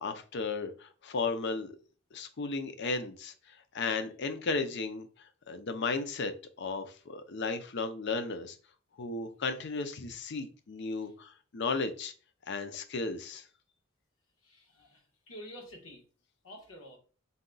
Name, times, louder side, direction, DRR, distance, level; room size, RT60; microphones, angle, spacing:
voice 1, 0.0-1.7 2.1-3.3 3.7-5.1 5.5-8.6 9.0-12.1 12.5-13.4, left 4 dB, 60° left, 9 dB, 0.6 m, -34 dB
voice 2, 14.4-16.0 16.4-17.0, equal, 85° left, 0 dB, 1.3 m, -49 dB
4.1 x 2.3 x 3.8 m, 0.38 s
head